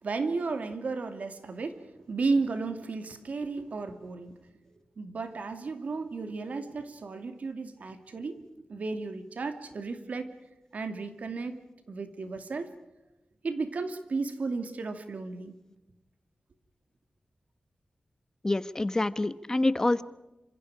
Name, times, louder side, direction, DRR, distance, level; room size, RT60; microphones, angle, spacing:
voice 1, 0.0-4.4 5.0-8.4 8.7-10.3 10.7-12.7 13.4-15.5, right 4 dB, 65° right, 7 dB, 2.5 m, -34 dB
voice 2, 18.4-20.0, left 2 dB, 20° left, 13 dB, 1.0 m, -26 dB
28.0 x 26.0 x 4.9 m, 0.97 s
wide cardioid pair, 140°, 3 cm